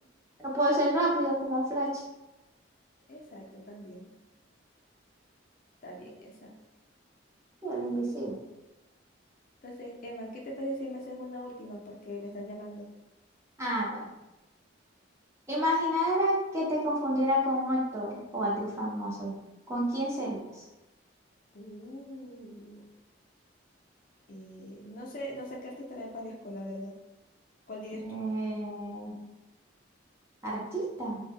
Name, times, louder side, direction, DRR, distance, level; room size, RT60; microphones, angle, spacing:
voice 1, 0.4-2.0 7.6-8.4 13.6-14.1 15.5-19.3 19.7-20.4 28.0-29.2 30.4-31.2, equal, 15° right, -5 dB, 0.5 m, -29 dB
voice 2, 3.1-4.1 5.8-6.5 9.6-12.9 21.5-22.9 24.3-26.9 27.7-28.2, equal, 45° left, -2 dB, 0.4 m, -41 dB
2.2 x 2.0 x 3.4 m, 1.0 s
head